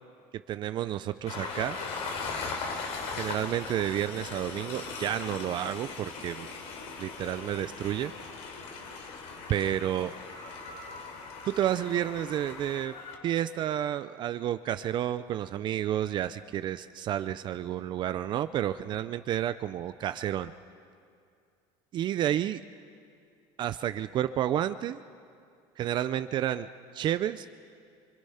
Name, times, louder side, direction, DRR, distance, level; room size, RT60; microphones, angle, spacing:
voice 1, 0.5-1.8 3.1-6.5 7.0-8.1 9.5-10.1 11.4-12.9 13.2-20.5 21.9-22.6 23.6-25.0 25.8-26.7 26.9-27.5, right 11 dB, 40° right, 12 dB, 0.5 m, -30 dB
Train, 1.3-13.2, left 4 dB, 65° left, 3.2 m, -39 dB
26.0 x 23.5 x 5.7 m, 2.3 s
cardioid pair, 150°, 12 cm